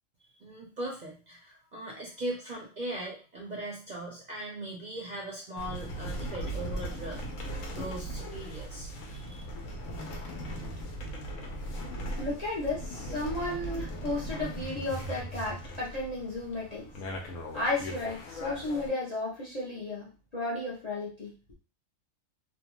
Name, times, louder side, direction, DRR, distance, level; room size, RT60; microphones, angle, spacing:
voice 1, 0.4-7.2 7.7-9.5, right 1 dB, 45° right, -2 dB, 0.6 m, -39 dB
sound 1, 5.6-18.9, equal, 85° left, 1.0 m, -38 dB
voice 2, 12.2-16.8 17.2-20.1 20.3-21.3, left 2 dB, 45° left, -4 dB, 0.5 m, -33 dB
2.6 x 2.2 x 2.9 m, 0.35 s
omnidirectional pair, 1.4 m